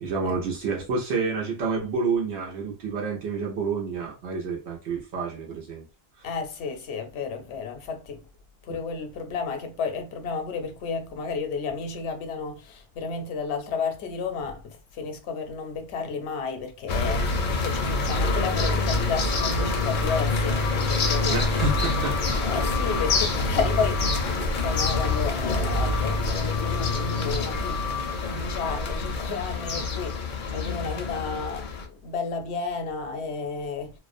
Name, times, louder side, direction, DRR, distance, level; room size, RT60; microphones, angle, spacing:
voice 1, 0.0-5.8 6.2-6.3 8.7-8.8 21.3-22.5, right 4 dB, 80° right, 0.9 m, -29 dB
voice 2, 6.2-8.2 8.7-17.3 17.6-21.6 22.4-27.8 28.2-33.9, left 5 dB, 80° left, 0.9 m, -32 dB
sound 1, 16.9-31.9, left 3 dB, 60° left, 0.6 m, -26 dB
2.4 x 2.1 x 2.5 m
omnidirectional pair, 1.1 m